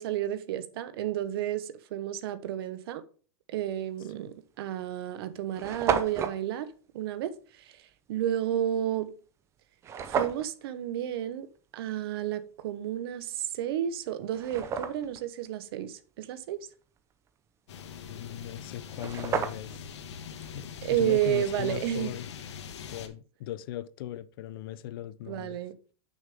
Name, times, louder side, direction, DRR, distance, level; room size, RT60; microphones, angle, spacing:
voice 1, 0.0-3.0 3.5-7.8 8.1-9.1 10.1-11.5 11.7-16.7 20.8-22.1 25.3-25.8, right 11 dB, 55° right, 0.9 m, -31 dB
sound 1, 4.0-4.2 4.9-5.0 5.2-5.3 5.5-6.4 9.8-10.5 13.4-13.5 14.1-15.2 18.6-18.7 18.9-19.9, right 7 dB, 20° right, 0.6 m, -31 dB
sound 2, 17.7-23.1, left 7 dB, 80° left, 1.2 m, -42 dB
voice 2, 18.1-19.8 20.5-22.3 22.9-25.6, left 12 dB, 50° left, 0.5 m, -38 dB
7.3 x 6.4 x 3.5 m
supercardioid pair, 150°, 14 cm